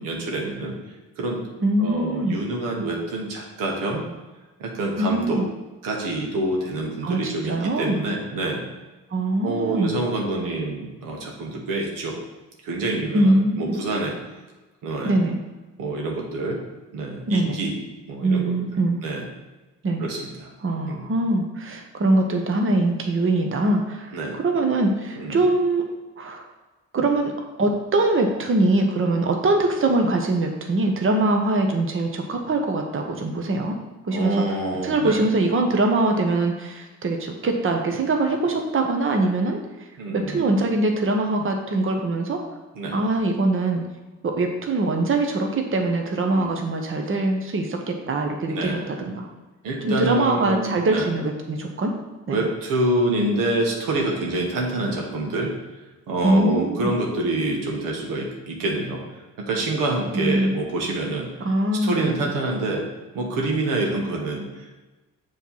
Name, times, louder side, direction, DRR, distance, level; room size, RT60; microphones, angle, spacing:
voice 1, 0.0-1.4 1.8-4.0 4.6-5.4 5.8-8.6 9.4-12.2 12.6-14.2 14.8-15.2 15.8-16.6 16.9-17.7 18.1-18.5 19.0-19.3 20.0-20.5 20.9-21.0 24.1-24.4 25.2-25.4 34.1-35.2 40.0-40.5 42.7-43.0 46.3-46.5 48.5-48.9 49.6-51.1 52.3-55.5 56.1-59.0 59.4-61.3 61.8-62.9 63.1-64.8, right 2 dB, 85° right, 0 dB, 1.3 m, -27 dB
voice 2, 1.6-2.4 5.0-5.4 7.0-8.0 9.1-10.0 13.1-13.8 15.0-15.4 17.3-17.6 18.2-19.0 19.8-20.1 20.6-24.1 24.4-25.8 26.2-26.4 26.9-27.3 27.6-33.7 34.0-34.6 34.8-39.6 40.1-42.4 42.9-43.8 44.2-49.3 49.8-51.9 52.3-52.5 56.2-56.9 60.1-60.5 61.4-62.3, right 2 dB, 40° right, 3 dB, 1.0 m, -22 dB
6.9 x 3.2 x 5.5 m, 1.2 s
supercardioid pair, 60°, 32 cm